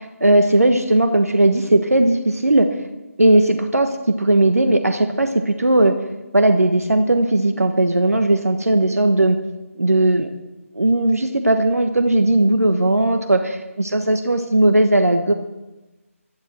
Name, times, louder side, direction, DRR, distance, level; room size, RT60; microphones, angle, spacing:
voice 1, 0.0-2.7 3.2-5.9 6.3-9.4 9.8-10.3 10.7-13.6 13.9-15.3, right 1 dB, 75° right, 6 dB, 1.3 m, -17 dB
25.0 x 10.5 x 4.4 m, 1.1 s
figure-of-eight pair, 150°, 8 cm